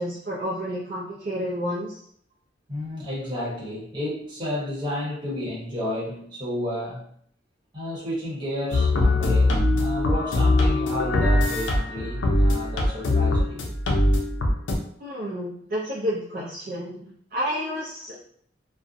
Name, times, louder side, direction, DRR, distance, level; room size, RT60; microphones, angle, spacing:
voice 1, 0.0-2.0 15.0-18.1, equal, 45° right, -5 dB, 0.4 m, -30 dB
voice 2, 2.7-7.1 7.7-13.7, left 1 dB, 25° right, -7 dB, 1.0 m, -31 dB
sound 1, 8.7-14.8, left 2 dB, 70° left, 0.5 m, -21 dB
2.6 x 2.0 x 2.5 m, 0.63 s
head